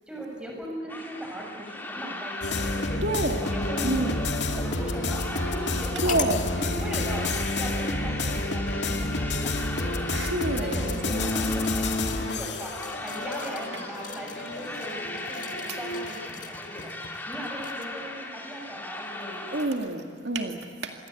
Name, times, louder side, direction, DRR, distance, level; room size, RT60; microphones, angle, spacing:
voice 1, 0.1-4.3 4.5-6.2 6.5-7.3 7.6-12.7 13.0-16.9 17.3-19.6, right 1 dB, 5° right, -1 dB, 6.9 m, -38 dB
sound 1, 0.9-19.7, left 2 dB, 10° left, 2.8 m, -38 dB
sound 2, 2.4-16.3, left 2 dB, 70° left, 2.2 m, -30 dB
voice 2, 3.0-3.4 3.8-4.2 6.0-6.4 10.1-11.3 15.7-15.8 19.5-20.9, right 2 dB, 70° right, 3 dB, 2.0 m, -28 dB
sound 3, 6.1-6.4 7.5-7.6 10.0-18.1 18.5-18.6, left 6 dB, 40° left, 1.8 m, -42 dB
27.5 x 22.0 x 8.4 m, 2.1 s
head